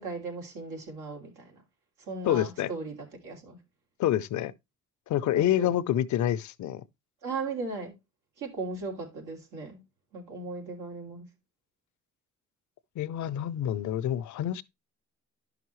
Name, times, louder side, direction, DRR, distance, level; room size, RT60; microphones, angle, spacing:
voice 1, 0.0-1.5 2.1-2.9 3.2-3.6 5.3-5.7 7.2-7.9 8.4-9.8 10.1-11.3, right 3 dB, 90° right, 2.8 m, -37 dB
voice 2, 2.2-2.7 4.0-4.5 5.1-6.8 13.0-14.6, left 11 dB, 70° left, 0.6 m, -27 dB
10.5 x 5.8 x 3.0 m
cardioid pair, 90°, 30 cm